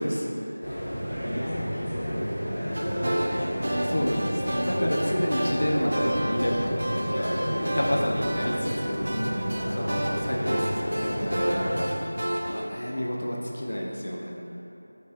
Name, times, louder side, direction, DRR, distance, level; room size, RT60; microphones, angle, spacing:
voice 1, 0.0-3.8 7.8-8.1 9.0-10.1 14.4-14.5, equal, 25° right, -12 dB, 0.9 m, -38 dB
sound 1, 0.6-11.9, equal, 15° left, 0.8 m, -31 dB
sound 2, 2.7-12.7, right 1 dB, 50° right, 0.3 m, -31 dB
voice 2, 3.9-4.3 4.6-9.1 9.8-12.0 12.5-14.4, equal, 60° left, -3 dB, 0.5 m, -29 dB
5.3 x 2.5 x 2.3 m, 2.8 s
figure-of-eight pair, 180°, 0 cm